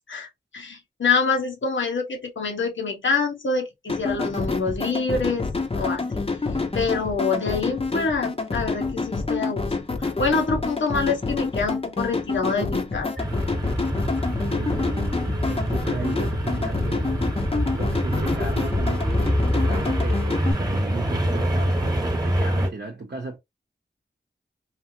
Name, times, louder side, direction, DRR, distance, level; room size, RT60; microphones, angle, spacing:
voice 1, 0.1-5.5 5.7-6.3 6.7-13.3, left 4 dB, 75° left, 1.0 m, -26 dB
sound 1, 3.9-20.5, left 3 dB, 30° left, 0.7 m, -28 dB
sound 2, 13.2-22.7, equal, 20° right, 1.1 m, -25 dB
voice 2, 14.5-17.1 17.8-23.4, right 3 dB, 55° right, 0.7 m, -35 dB
3.3 x 2.5 x 2.7 m
wide cardioid pair, 65°, 20 cm